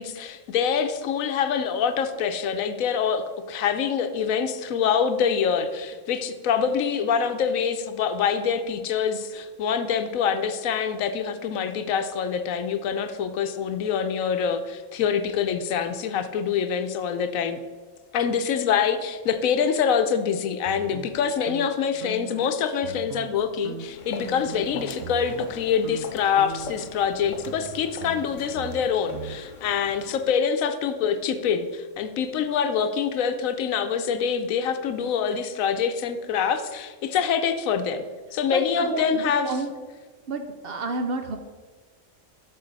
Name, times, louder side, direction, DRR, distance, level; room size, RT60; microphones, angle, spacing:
voice 1, 0.0-17.6 18.1-38.0 38.3-39.5, left 7 dB, 80° left, 9 dB, 1.1 m, -25 dB
sound 1, 20.6-22.5 22.8-23.4 23.6-25.5 25.8-26.1 26.4-29.4, right 7 dB, 85° right, 1.1 m, -40 dB
Walk footsteps, 23.7-30.3, left 4 dB, 50° left, 0.6 m, -41 dB
voice 2, 38.5-39.7 40.3-41.4, right 3 dB, 55° right, 6 dB, 0.7 m, -30 dB
12.5 x 4.3 x 4.0 m, 1.4 s
omnidirectional pair, 1.4 m